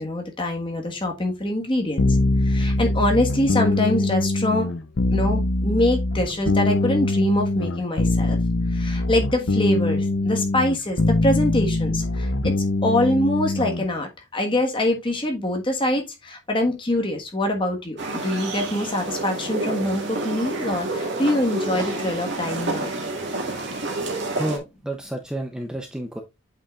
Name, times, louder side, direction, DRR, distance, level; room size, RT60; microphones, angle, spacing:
voice 1, 0.0-2.2 2.4-4.7 5.0-8.4 8.7-12.5 12.8-22.9, left 1 dB, 25° left, 1.4 m, -24 dB
sound 1, 2.0-13.8, left 2 dB, 70° left, 0.7 m, -23 dB
sound 2, 18.0-24.6, right 2 dB, 55° right, 2.1 m, -29 dB
voice 2, 24.3-26.2, right 1 dB, 5° right, 0.6 m, -30 dB
8.4 x 5.6 x 2.4 m
head